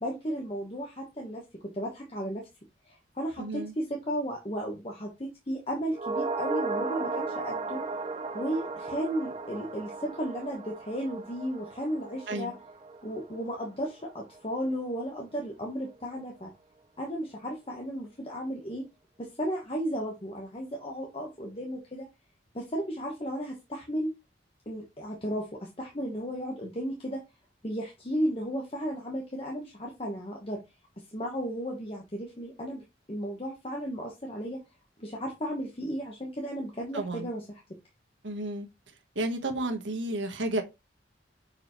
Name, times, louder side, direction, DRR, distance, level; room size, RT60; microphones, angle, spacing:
voice 1, 0.0-1.4 1.7-2.5 2.8-7.8 8.3-12.5 13.0-16.5 17.0-18.8 19.2-22.1 22.5-24.1 24.7-27.2 27.6-30.6 31.1-32.8 33.1-34.6 35.0-37.6, equal, 30° left, 1.2 m, -34 dB
voice 2, 3.4-3.7 12.3-12.5 36.9-37.3 38.2-38.7 39.1-40.6, right 2 dB, 85° right, 1.4 m, -32 dB
sound 1, 5.9-14.4 14.7-14.8, right 3 dB, 35° right, 0.6 m, -36 dB
6.5 x 4.7 x 3.1 m
head